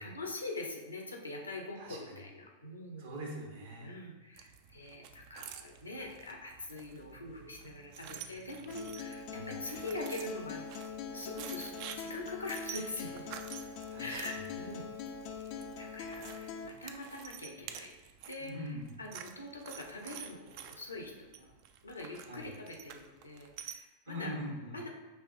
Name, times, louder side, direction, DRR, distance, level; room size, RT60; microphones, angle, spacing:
voice 1, 0.0-3.1 3.8-10.6 11.1-13.4 14.0-14.9 15.5-17.9 18.3-21.5 21.8-24.3 24.7-24.9, left 2 dB, 80° left, 1 dB, 0.7 m, -43 dB
voice 2, 1.8-2.1 3.0-3.9 9.3-9.6 13.9-14.4 18.4-18.9 22.2-22.5 24.1-24.8, equal, 60° right, -1 dB, 1.0 m, -42 dB
sound 1, 4.4-23.8, right 9 dB, 45° right, 0.3 m, -50 dB
Acoustic guitar, 8.7-16.7, left 6 dB, 45° left, 0.3 m, -43 dB
5.4 x 3.0 x 2.6 m, 1.2 s
figure-of-eight pair, 90°, 0 cm